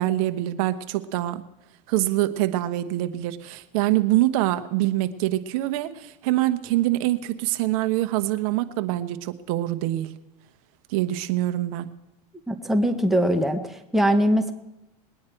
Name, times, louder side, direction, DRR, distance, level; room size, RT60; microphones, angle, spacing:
voice 1, 0.0-1.4 1.9-10.1 10.9-11.9, right 15 dB, 60° right, 10 dB, 1.2 m, -25 dB
voice 2, 12.5-14.5, equal, ahead, 5 dB, 1.0 m, -22 dB
20.5 x 9.5 x 4.6 m, 0.92 s
supercardioid pair, 130°, 21 cm